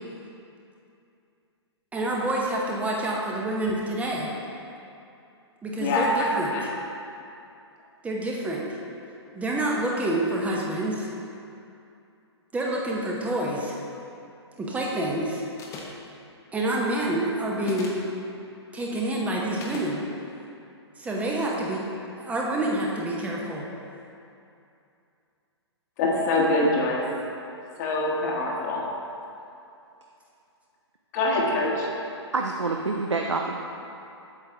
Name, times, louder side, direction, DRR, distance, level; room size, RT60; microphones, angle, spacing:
voice 1, 1.9-4.3 5.6-6.7 8.0-8.7 9.3-11.1 12.5-13.8 14.6-15.4 16.5-18.0 18.7-20.0 21.0-21.9 22.2-23.7, right 1 dB, 10° right, -3 dB, 0.8 m, -27 dB
voice 2, 5.8-6.7 26.0-27.0 27.8-28.8 31.1-31.9, left 2 dB, 35° left, -2 dB, 1.2 m, -24 dB
sound 1, 15.6-16.1 17.6-18.1 19.6-19.9, left 3 dB, 20° left, 0.9 m, -38 dB
voice 3, 32.3-33.6, right 3 dB, 85° right, 2 dB, 0.5 m, -27 dB
8.1 x 6.8 x 3.4 m, 2.7 s
figure-of-eight pair, 120°, 15 cm